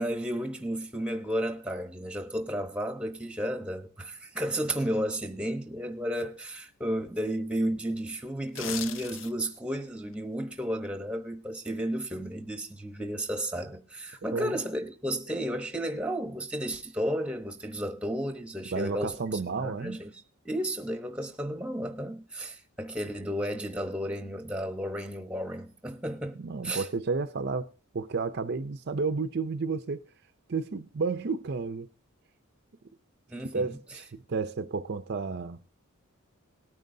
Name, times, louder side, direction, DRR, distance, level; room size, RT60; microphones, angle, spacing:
voice 1, 0.0-20.1 20.4-26.9 33.3-33.8, equal, 5° right, 0.9 m, -33 dB
sound 1, 8.4-9.6 10.0-10.1, left 9 dB, 60° left, 0.6 m, -37 dB
voice 2, 14.2-14.5 18.7-20.0 26.4-30.0 30.5-31.9 33.5-35.6, right 4 dB, 50° right, 0.5 m, -32 dB
18.5 x 9.2 x 2.7 m
head